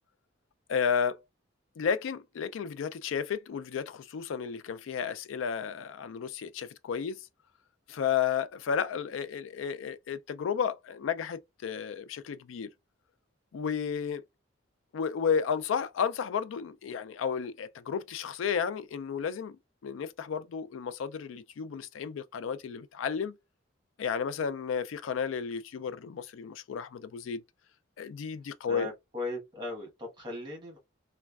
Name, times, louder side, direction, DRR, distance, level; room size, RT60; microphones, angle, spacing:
voice 1, 0.7-1.2 1.8-7.3 7.9-12.7 13.5-14.2 14.9-19.6 19.8-23.3 24.0-27.4 28.0-28.9, left 7 dB, 80° left, 0.3 m, -32 dB
voice 2, 28.7-30.8, left 2 dB, 25° right, 1.2 m, -38 dB
3.2 x 2.2 x 2.3 m
head